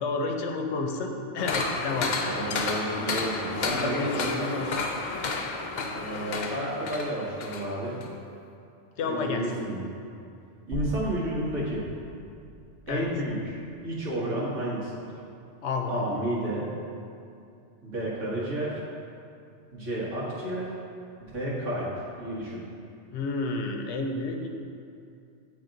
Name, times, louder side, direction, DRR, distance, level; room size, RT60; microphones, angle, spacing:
voice 1, 0.0-2.1 3.7-4.7 9.0-9.5 12.9-13.1 15.6-16.1 23.1-24.5, left 3 dB, 70° left, 4 dB, 0.9 m, -30 dB
sound 1, 1.4-7.7 8.0-8.1, left 3 dB, 55° left, 0.5 m, -31 dB
voice 2, 2.2-4.5 5.9-8.0 9.0-9.8 10.7-11.9 12.9-13.6 13.8-15.0 15.9-16.7 17.8-18.8 19.7-20.7 21.2-21.9 22.2-22.6, right 1 dB, 90° right, -7 dB, 1.7 m, -31 dB
sound 2, 10.7-14.9, equal, 70° right, 1.5 m, -42 dB
8.5 x 3.4 x 3.8 m, 2.6 s
omnidirectional pair, 1.2 m